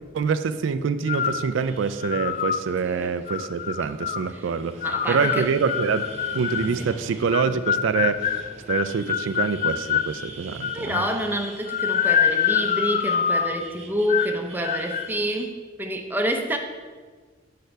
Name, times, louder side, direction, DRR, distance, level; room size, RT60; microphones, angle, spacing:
voice 1, 0.1-4.8 5.1-6.0 6.3-8.4 8.7-11.1, right 5 dB, 80° right, 12 dB, 0.4 m, -25 dB
sound 1, 1.0-15.5, right 2 dB, 35° right, 0.9 m, -45 dB
sound 2, 1.1-1.5 2.0-2.6 3.3-4.3 4.8-6.7 7.3-10.1 10.6-11.2 11.7-13.6 14.1-14.4 14.6-15.1, left 8 dB, 40° left, 0.3 m, -25 dB
voice 2, 4.8-5.5 6.6-6.9 10.7-16.6, right 1 dB, 10° right, 3 dB, 0.6 m, -28 dB
6.6 x 4.6 x 6.5 m, 1.5 s
head